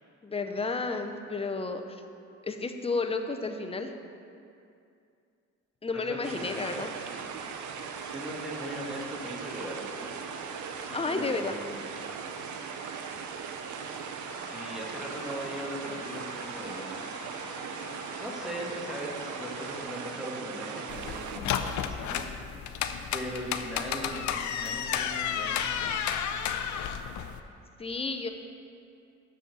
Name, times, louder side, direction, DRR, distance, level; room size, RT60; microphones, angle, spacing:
voice 1, 0.2-2.0 2.4-3.9 5.8-6.9 10.9-11.6 27.8-28.3, left 3 dB, 20° left, 6 dB, 0.6 m, -32 dB
voice 2, 5.9-6.7 8.0-10.1 11.1-11.9 14.4-16.9 18.2-22.3 23.1-25.6, equal, ahead, -2 dB, 1.6 m, -39 dB
sound 1, 6.2-21.4, right 6 dB, 75° right, 0.7 m, -39 dB
sound 2, 14.3-19.8, left 2 dB, 40° left, 2.1 m, -46 dB
sound 3, 20.9-27.4, left 8 dB, 70° left, 0.6 m, -32 dB
6.8 x 6.3 x 6.7 m, 2.5 s
cardioid pair, 90°, 30 cm